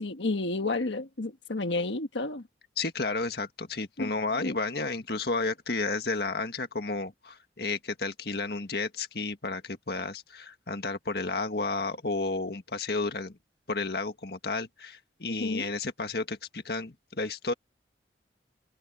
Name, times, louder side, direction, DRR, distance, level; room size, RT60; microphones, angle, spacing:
voice 1, 0.0-2.4 4.0-4.1 4.4-4.5 15.4-15.7, left 2 dB, 90° left, 1.4 m, -31 dB
voice 2, 2.8-13.4 13.7-17.5, left 3 dB, 60° left, 1.7 m, -32 dB
open air
head